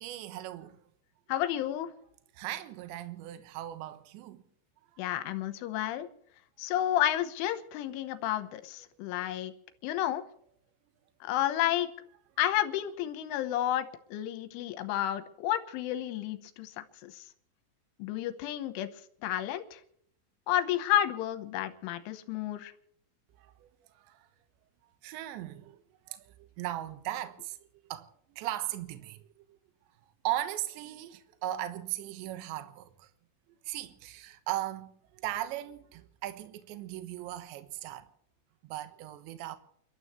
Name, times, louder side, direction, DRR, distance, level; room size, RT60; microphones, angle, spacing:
voice 1, 0.0-0.8 2.3-4.4 4.9-5.0 8.8-8.9 9.2-9.3 23.4-24.3 25.0-29.6 30.0-33.1 33.5-38.1 38.6-39.6, right 14 dB, 70° right, 3.2 m, -38 dB
voice 2, 1.3-1.9 5.0-6.1 6.6-9.5 9.8-10.2 11.2-11.9 12.4-17.2 18.0-18.9 19.2-19.8 20.5-22.7, left 12 dB, 80° left, 3.4 m, -31 dB
29.0 x 13.0 x 3.1 m
omnidirectional pair, 5.8 m